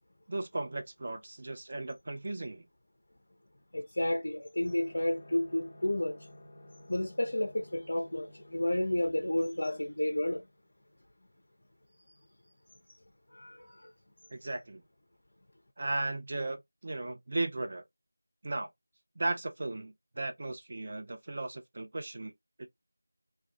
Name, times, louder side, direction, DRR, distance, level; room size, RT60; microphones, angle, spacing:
voice 1, 0.3-2.7 14.3-14.8 15.8-17.8 18.4-18.7 19.2-22.3, right 2 dB, 35° right, 0.5 m, -36 dB
voice 2, 3.7-6.2 6.9-10.4 12.9-13.0 13.3-13.9, left 1 dB, 55° left, 0.5 m, -31 dB
sound 1, 4.6-10.9, left 1 dB, 25° left, 0.9 m, -54 dB
2.3 x 2.2 x 2.7 m
figure-of-eight pair, 170°, 0 cm